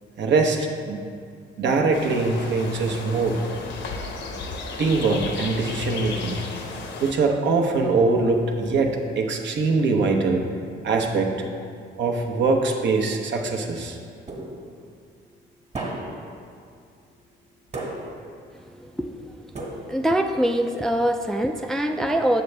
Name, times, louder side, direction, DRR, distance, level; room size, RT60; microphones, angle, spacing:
voice 1, 0.2-1.0 1.6-3.4 4.8-6.4 7.0-10.4 10.8-11.4 12.0-14.0, right 3 dB, 65° right, 2 dB, 0.9 m, -22 dB
sound 1, 1.9-7.1, left 3 dB, 65° left, 0.8 m, -34 dB
sound 2, 14.3-14.9 15.7-16.4 17.7-18.4 19.5-20.2, right 2 dB, 35° right, 1.5 m, -34 dB
voice 2, 19.9-22.4, right 1 dB, ahead, 5 dB, 0.3 m, -23 dB
7.7 x 6.8 x 3.3 m, 2.2 s
cardioid pair, 90°, 20 cm